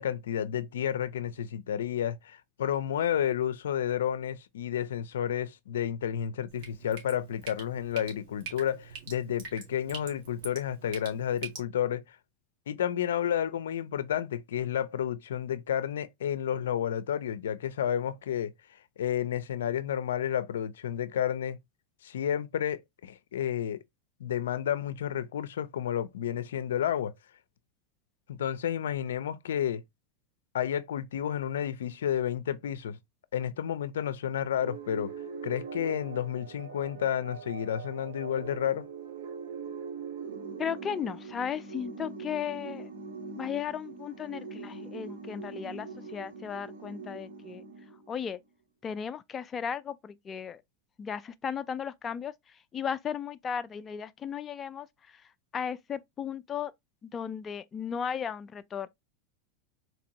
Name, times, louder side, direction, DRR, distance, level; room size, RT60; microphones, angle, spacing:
voice 1, 0.0-12.0 12.7-18.5 19.0-21.6 22.0-23.8 24.2-27.1 28.3-29.8 30.5-33.0 33.3-35.1 35.4-38.9, left 9 dB, 85° left, 0.4 m, -31 dB
Drip, 6.5-11.6, right 6 dB, 65° right, 1.9 m, -45 dB
sound 1, 34.6-48.3, right 5 dB, 85° right, 1.7 m, -42 dB
voice 2, 40.6-42.9 43.4-47.6 48.1-48.4 48.8-50.6 51.0-52.3 52.7-54.9 55.5-56.7 57.0-58.9, left 7 dB, 25° left, 0.4 m, -35 dB
4.1 x 2.6 x 2.9 m
hypercardioid pair, 115°, 0 cm